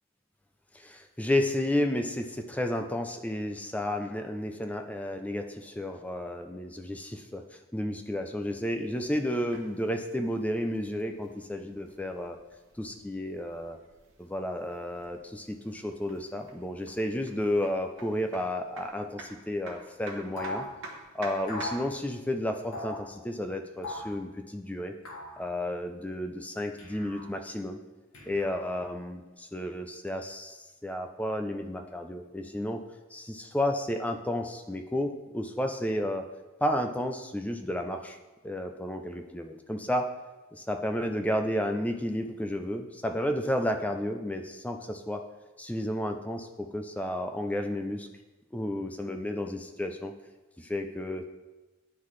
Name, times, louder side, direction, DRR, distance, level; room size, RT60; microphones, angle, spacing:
voice 1, 0.7-7.4 7.7-12.4 12.8-13.8 14.2-20.7 21.1-24.9 25.4-27.8 28.2-32.8 33.1-36.2 36.6-38.2 38.4-40.1 40.5-45.2 45.6-48.1 48.5-50.1 50.6-51.2, left 1 dB, 5° left, 5 dB, 0.4 m, -32 dB
sound 1, 8.7-22.0, right 2 dB, 60° right, 1.1 m, -50 dB
sound 2, 20.4-20.7 21.5-21.8 22.7-23.0 23.8-24.2 25.0-25.4 26.8-27.3 28.1-28.8, left 2 dB, 80° left, 1.4 m, -38 dB
10.0 x 3.8 x 3.2 m, 1.1 s
head